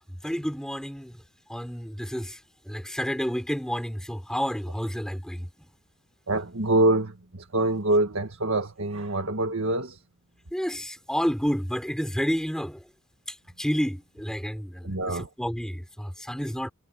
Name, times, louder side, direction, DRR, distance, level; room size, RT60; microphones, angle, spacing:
voice 1, 0.2-1.2 1.5-2.4 2.7-5.5 10.5-12.8 13.6-14.9 15.4-16.7, equal, 5° left, 5.1 m, -30 dB
voice 2, 6.3-10.0 14.8-15.3, right 2 dB, 70° right, 1.8 m, -25 dB
head